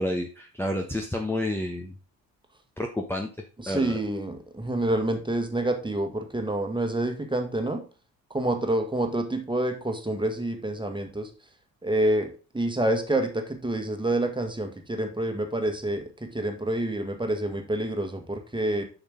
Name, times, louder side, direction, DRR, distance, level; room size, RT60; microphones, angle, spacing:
voice 1, 0.0-1.9 2.8-3.3 3.7-4.0, left 1 dB, 5° left, 2 dB, 1.0 m, -29 dB
voice 2, 3.6-7.8 8.3-11.3 11.8-18.8, right 1 dB, 10° right, 5 dB, 1.7 m, -28 dB
7.2 x 5.6 x 3.8 m, 0.35 s
hypercardioid pair, 50°, 41 cm